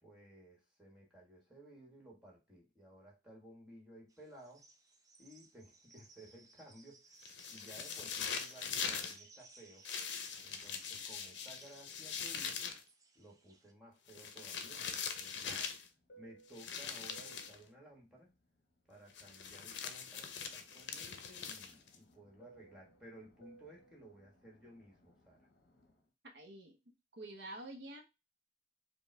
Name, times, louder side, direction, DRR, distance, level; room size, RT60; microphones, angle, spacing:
voice 1, 0.0-4.7 5.2-7.2 7.5-9.9 10.4-12.7 13.1-15.7 16.2-18.3 18.9-25.5, right 1 dB, 5° right, -2 dB, 1.5 m, -57 dB
sound 1, 4.1-13.7, right 3 dB, 20° right, 0.5 m, -61 dB
sound 2, 7.2-9.2 9.8-12.8 14.1-15.9 16.5-17.6 19.1-22.0, left 6 dB, 85° left, 0.6 m, -42 dB
Fixed-wing aircraft airplane, 15.7-19.9 20.2-26.0, right 3 dB, 60° left, 1.1 m, -64 dB
voice 2, 26.3-28.0, right 1 dB, 75° right, 4 dB, 0.8 m, -49 dB
5.3 x 2.3 x 3.3 m, 0.26 s
head